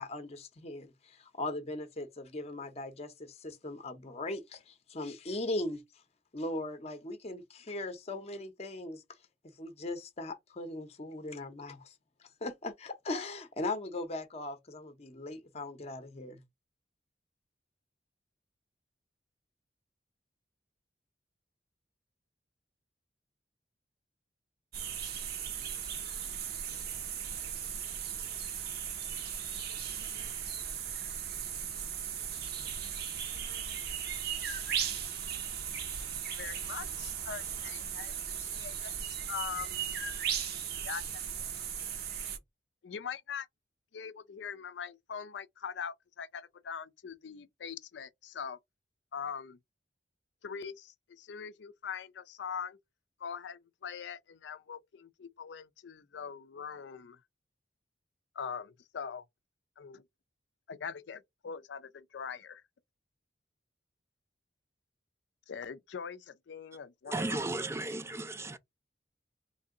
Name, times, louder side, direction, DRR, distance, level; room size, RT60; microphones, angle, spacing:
voice 1, 0.0-5.8 6.3-9.0 9.6-11.9 12.2-16.4, left 2 dB, 35° left, 0.7 m, -39 dB
sound 1, 24.7-42.4, right 8 dB, 60° right, 0.7 m, -37 dB
voice 2, 36.0-38.9 39.3-39.8 40.8-41.5 42.8-43.5 43.9-48.6 49.1-49.6 50.4-52.8 53.2-57.2 58.3-59.3 59.8-60.0 60.7-62.6 65.5-67.4, left 7 dB, 75° left, 0.4 m, -42 dB
voice 3, 67.0-68.6, right 2 dB, 15° right, 0.3 m, -35 dB
3.2 x 2.7 x 3.7 m
head